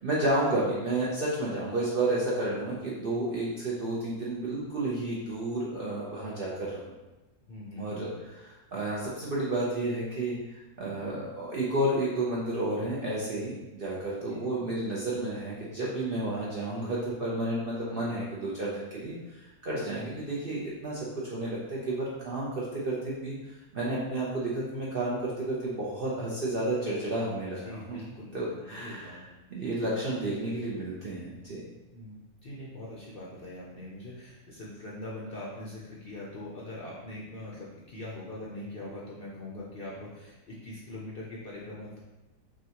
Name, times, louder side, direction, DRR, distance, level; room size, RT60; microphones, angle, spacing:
voice 1, 0.0-6.9 7.8-8.1 8.4-23.3 23.7-28.0 28.3-29.2 29.5-31.6, right 1 dB, 55° right, -6 dB, 0.6 m, -31 dB
voice 2, 7.5-8.1 14.2-14.4 19.9-20.2 27.6-29.2 31.9-42.0, left 1 dB, 55° left, -6 dB, 0.7 m, -42 dB
6.2 x 2.3 x 2.9 m, 1.1 s
omnidirectional pair, 1.6 m